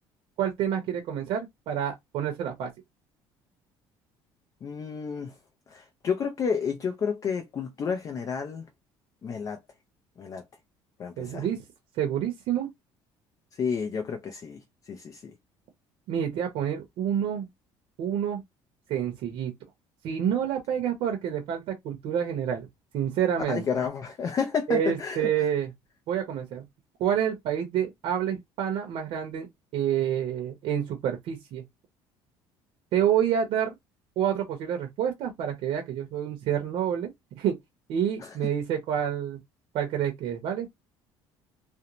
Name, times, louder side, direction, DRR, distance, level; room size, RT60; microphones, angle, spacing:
voice 1, 0.4-2.7 11.2-11.6 12.0-12.7 16.1-17.5 18.0-18.4 18.9-19.5 20.0-22.7 22.9-23.7 24.7-25.7 26.1-26.6 27.0-29.5 29.7-31.6 32.9-33.7 34.2-37.1 37.4-37.6 37.9-39.4 39.7-40.7, right 9 dB, 70° right, 0.8 m, -28 dB
voice 2, 4.6-5.3 5.7-8.6 9.2-9.6 10.2-10.4 11.0-11.4 13.6-14.6 14.9-15.2 23.5-25.3 38.2-38.3, left 6 dB, 35° left, 0.4 m, -30 dB
2.5 x 2.1 x 2.9 m
cardioid pair, 135°, 10 cm